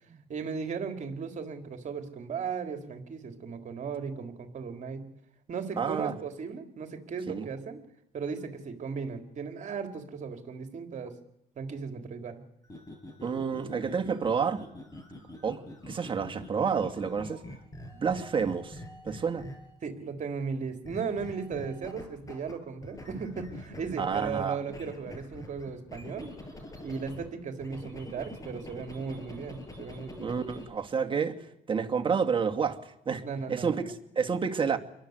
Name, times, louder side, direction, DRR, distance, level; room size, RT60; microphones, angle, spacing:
voice 1, 0.3-5.0 5.5-7.8 8.1-11.2 11.6-12.4 19.8-26.3 26.8-30.4 33.2-33.8, right 5 dB, 45° right, 3.7 m, -36 dB
voice 2, 5.8-6.1 7.3-7.5 13.2-14.6 15.4-17.4 17.9-19.5 24.0-24.6 30.2-31.4 31.7-33.2 33.5-34.8, right 6 dB, 30° right, 2.5 m, -29 dB
sound 1, 12.6-19.8 20.8-22.5 22.8-27.3 27.6-30.7, left 1 dB, 20° left, 7.0 m, -45 dB
29.0 x 23.0 x 8.2 m
cardioid pair, 110°, 17 cm